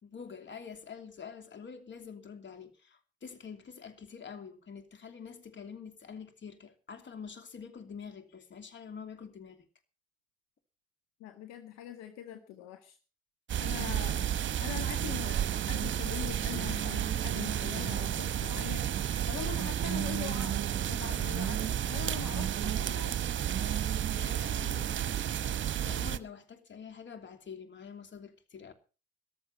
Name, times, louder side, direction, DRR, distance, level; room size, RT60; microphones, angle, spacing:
voice 1, 0.0-9.7 13.8-14.0 25.8-28.7, left 6 dB, 40° left, 2.9 m, -46 dB
voice 2, 11.2-13.0 13.6-14.3 14.6-18.9 19.3-20.6 20.9-23.1 23.6-23.8 24.1-24.9, left 11 dB, 65° left, 1.7 m, -43 dB
sound 1, 13.5-26.2, right 10 dB, 40° right, 1.1 m, -31 dB
14.0 x 13.0 x 5.7 m
figure-of-eight pair, 50°, 29 cm